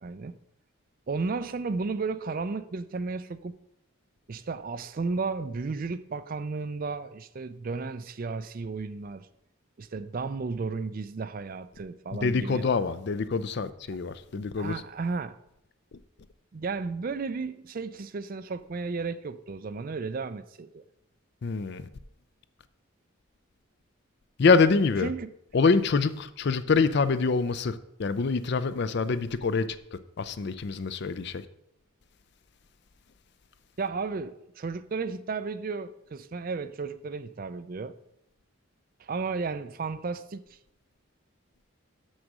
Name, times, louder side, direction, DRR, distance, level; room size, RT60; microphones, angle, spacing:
voice 1, 0.0-0.4 1.1-3.6 4.3-9.3 9.8-12.6 14.6-15.4 16.5-20.8 25.0-25.3 33.8-37.9 39.0-40.4, right 4 dB, 40° right, 0.4 m, -33 dB
voice 2, 12.2-14.8 21.4-21.9 24.4-25.1 25.5-31.4, left 4 dB, 50° left, 0.4 m, -25 dB
6.4 x 6.3 x 6.1 m
head